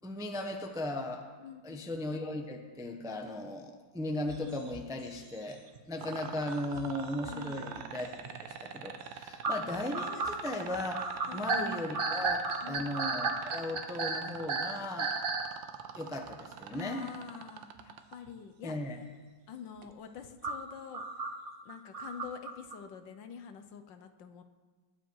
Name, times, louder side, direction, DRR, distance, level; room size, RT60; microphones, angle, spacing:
voice 1, 0.0-1.3 1.6-5.6 5.9-15.2 15.9-17.0 18.6-19.0, left 1 dB, 5° right, 3 dB, 0.6 m, -37 dB
voice 2, 1.4-1.9 7.2-7.7 11.3-11.5 12.6-13.0 16.7-18.7 19.5-21.0 21.6-24.4, left 7 dB, 70° left, 8 dB, 1.5 m, -46 dB
sound 1, 4.3-6.0 6.3-7.8 8.2-8.4 8.7-8.8 9.4-15.5 16.3-16.4 18.3-18.4 20.4-22.7, right 4 dB, 40° right, 0.8 m, -34 dB
sound 2, 6.0-18.2 19.8-19.9, right 9 dB, 75° right, 1.6 m, -43 dB
20.5 x 8.9 x 4.7 m, 1.3 s
omnidirectional pair, 2.1 m